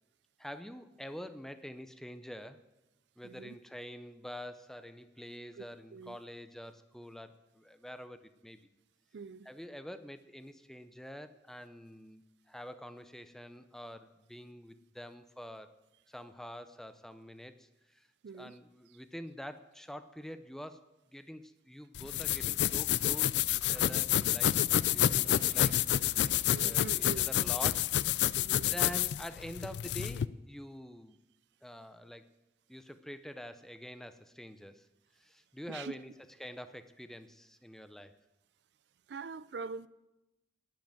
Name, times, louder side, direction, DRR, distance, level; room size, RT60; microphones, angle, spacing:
voice 1, 0.4-2.6 3.2-8.6 9.5-15.7 16.1-18.1 18.3-20.8 21.1-24.6 24.9-25.8 26.2-31.2 31.6-32.3 32.7-34.9 35.2-36.1 36.4-38.1, equal, 5° left, 0.5 m, -46 dB
voice 2, 3.2-3.6 5.6-5.7 5.9-6.2 9.1-9.5 18.2-18.6 26.5-27.3 28.3-28.7 35.7-35.9 39.1-39.9, right 5 dB, 75° right, 0.4 m, -43 dB
sound 1, 22.0-30.3, left 12 dB, 75° left, 0.3 m, -29 dB
sound 2, 24.7-28.1 29.6-29.7, right 3 dB, 55° right, 3.1 m, -58 dB
10.5 x 7.7 x 9.0 m
head